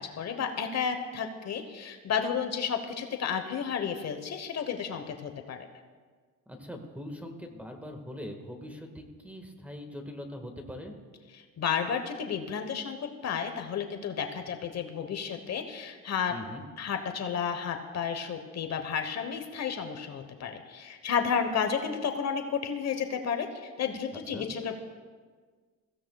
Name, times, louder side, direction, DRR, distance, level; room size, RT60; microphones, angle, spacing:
voice 1, 0.0-5.7 11.4-16.3 16.8-24.8, left 7 dB, 50° left, 6 dB, 1.1 m, -32 dB
voice 2, 6.5-10.9 16.3-16.6 24.1-24.5, left 1 dB, 5° right, 4 dB, 1.6 m, -42 dB
23.0 x 15.5 x 2.3 m, 1.5 s
cardioid pair, 115°, 33 cm